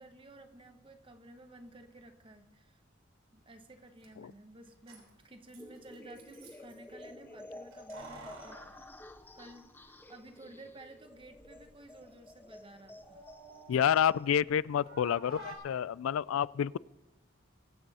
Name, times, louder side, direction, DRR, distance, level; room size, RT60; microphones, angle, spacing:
voice 1, 0.0-2.8 3.3-8.9 9.3-13.3 15.0-15.4, right 2 dB, 25° right, 7 dB, 1.0 m, -54 dB
Keys jangling, 3.7-3.8 4.0-4.1 4.7-6.8 7.7-9.9 10.2-10.3 11.1-11.7 12.1-14.5 14.8-15.6, right 1 dB, 90° right, 3.4 m, -51 dB
sound 1, 5.6-14.3, left 1 dB, 10° left, 0.7 m, -51 dB
voice 2, 13.7-16.8, left 9 dB, 90° left, 22 dB, 0.3 m, -29 dB
23.0 x 7.9 x 4.2 m, 1.1 s
head